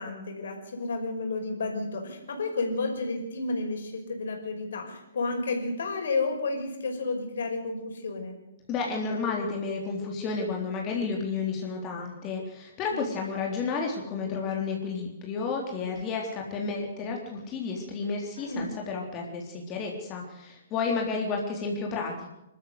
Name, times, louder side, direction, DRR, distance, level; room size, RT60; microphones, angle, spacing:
voice 1, 0.0-8.4 12.9-13.0 18.4-18.7, left 3 dB, 60° left, 3 dB, 5.6 m, -31 dB
voice 2, 8.7-22.3, left 4 dB, 25° left, 0 dB, 3.6 m, -31 dB
26.0 x 13.0 x 8.2 m, 0.92 s
figure-of-eight pair, 120°, 0 cm